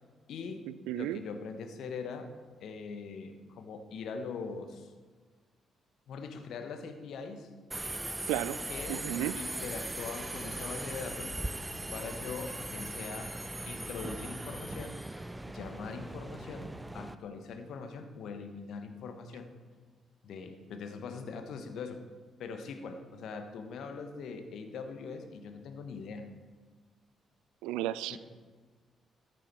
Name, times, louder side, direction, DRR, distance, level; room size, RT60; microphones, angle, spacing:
voice 1, 0.3-0.7 0.9-2.3 2.6-4.9 6.1-7.5 8.7-9.0 9.4-11.4 11.9-13.4 13.7-15.0 15.5-19.5 20.2-22.1 22.4-26.3 28.1-28.2, left 5 dB, 60° left, 7 dB, 1.2 m, -42 dB
voice 2, 0.9-1.2 8.3-8.6 8.9-9.4 27.6-28.2, right 14 dB, 70° right, 17 dB, 0.3 m, -33 dB
Subway metro underground, 7.7-17.1, right 1 dB, 15° right, 0.7 m, -39 dB
14.0 x 10.0 x 4.5 m, 1.4 s
figure-of-eight pair, 40°, 0 cm